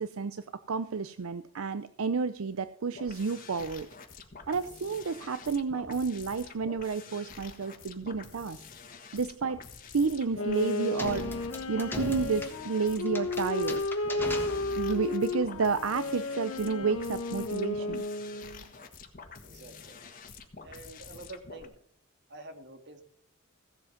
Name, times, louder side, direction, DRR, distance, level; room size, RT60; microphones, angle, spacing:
voice 1, 0.0-3.9 4.5-8.6 9.1-9.6 9.9-11.3 11.7-13.8 14.8-18.0, right 5 dB, 75° right, 12 dB, 0.6 m, -31 dB
sound 1, 2.9-21.7, left 5 dB, 40° left, 1.6 m, -48 dB
Wind instrument woodwind instrument, 10.3-18.6, left 2 dB, 85° left, 1.5 m, -33 dB
sound 2, 11.0-15.1, left 2 dB, 10° left, 1.4 m, -40 dB
voice 2, 19.4-20.0 20.6-21.7 22.3-23.0, right 2 dB, 55° right, 7 dB, 1.7 m, -47 dB
15.5 x 7.8 x 5.8 m, 0.62 s
head